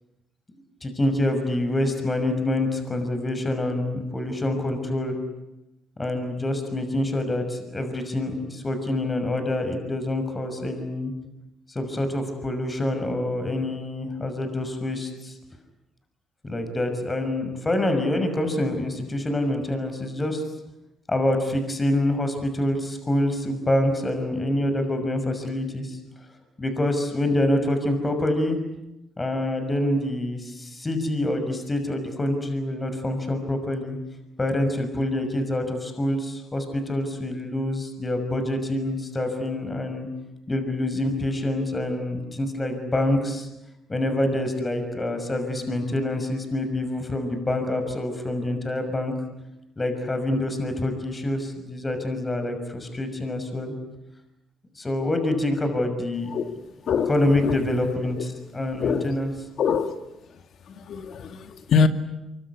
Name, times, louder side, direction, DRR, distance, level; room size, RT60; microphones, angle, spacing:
voice 1, 0.8-5.2 6.0-11.1 11.7-15.4 16.4-20.4 21.1-26.0 26.6-28.6 29.2-34.0 34.4-40.1 40.5-43.5 43.9-49.1 49.8-53.7 54.7-56.3 57.1-58.3 58.5-59.3, left 1 dB, 25° left, 6.2 m, -26 dB
voice 2, 56.9-57.6 58.2-58.3 58.8-59.2 59.6-60.0 60.7-61.9, left 6 dB, 65° left, 2.3 m, -24 dB
25.0 x 24.0 x 9.8 m
supercardioid pair, 65°, 0 cm